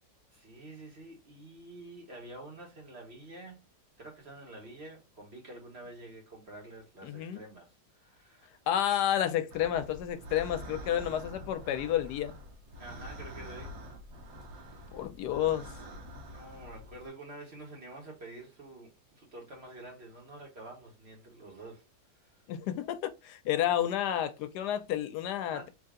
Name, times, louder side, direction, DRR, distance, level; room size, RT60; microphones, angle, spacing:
voice 1, 0.3-3.6 4.0-8.6 12.8-13.8 14.6-14.9 16.3-21.9 22.2-22.3 25.5-25.7, right 2 dB, 40° right, 1.4 m, -48 dB
voice 2, 7.0-7.4 8.7-12.3 14.9-15.7 22.5-25.7, left 11 dB, 80° left, 1.1 m, -30 dB
sound 1, 9.5-17.1, equal, 75° right, 1.5 m, -46 dB
3.3 x 2.7 x 3.6 m
omnidirectional pair, 1.8 m